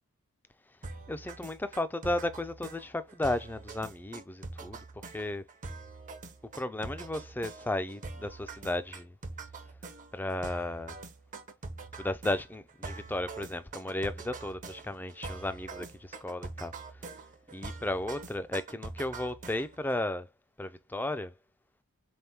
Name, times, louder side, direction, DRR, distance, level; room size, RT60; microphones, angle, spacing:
sound 1, 0.8-19.9, right 3 dB, 35° right, 0.6 m, -44 dB
voice 1, 1.1-4.8 5.1-5.4 6.6-9.1 10.1-11.0 12.0-16.7 17.5-20.3 20.6-21.3, left 1 dB, 10° left, 0.4 m, -34 dB
3.9 x 3.5 x 2.8 m
head